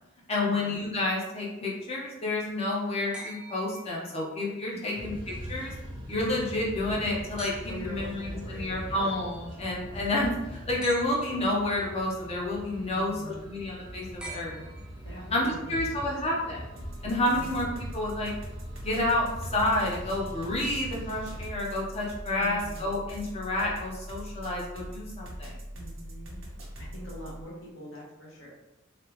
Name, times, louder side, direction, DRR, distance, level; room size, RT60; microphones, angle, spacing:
voice 1, 0.3-5.1 5.5-5.7 6.1-14.6 15.3-16.6 17.0-17.7 17.9-18.3 18.8-25.5, left 1 dB, 30° left, -3 dB, 0.8 m, -29 dB
sound 1, 3.1-4.5 7.4-8.0 10.8-11.6 14.2-15.2 16.8-16.9, right 1 dB, 5° right, 0.3 m, -45 dB
voice 2, 4.7-5.1 7.7-9.1 12.8-13.5 15.0-16.5 17.3-17.6 22.4-22.8 25.7-26.5 26.8-28.5, equal, 65° left, -4 dB, 1.2 m, -44 dB
sound 2, 5.0-21.5, equal, 20° right, 0.8 m, -42 dB
sound 3, 16.8-27.4, equal, 70° right, 0.9 m, -42 dB
3.3 x 2.3 x 3.0 m, 0.95 s
head